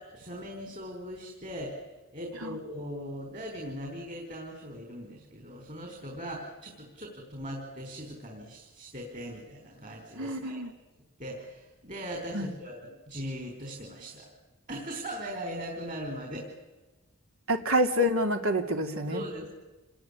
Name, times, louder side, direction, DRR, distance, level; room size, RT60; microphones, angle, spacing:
voice 1, 0.0-1.8 2.1-10.6 11.2-14.3 14.7-16.5 19.1-19.5, equal, 40° right, 2 dB, 4.6 m, -39 dB
voice 2, 10.2-10.7 12.3-12.5 17.5-19.2, equal, 80° right, 5 dB, 2.9 m, -27 dB
28.5 x 20.0 x 9.9 m, 1.2 s
head